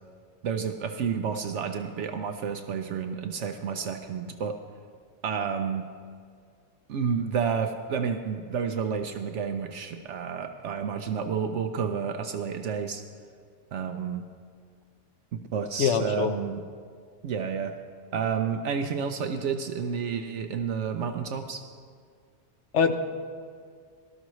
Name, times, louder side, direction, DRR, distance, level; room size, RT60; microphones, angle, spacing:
voice 1, 0.4-4.6 5.2-5.9 6.9-13.0 13.7-14.3 15.3-16.6 17.2-17.7 18.1-21.6, right 6 dB, 70° right, 7 dB, 0.9 m, -30 dB
voice 2, 15.8-16.3 22.7-23.0, left 6 dB, 65° left, 8 dB, 1.0 m, -23 dB
18.0 x 12.5 x 3.1 m, 2.1 s
omnidirectional pair, 1.3 m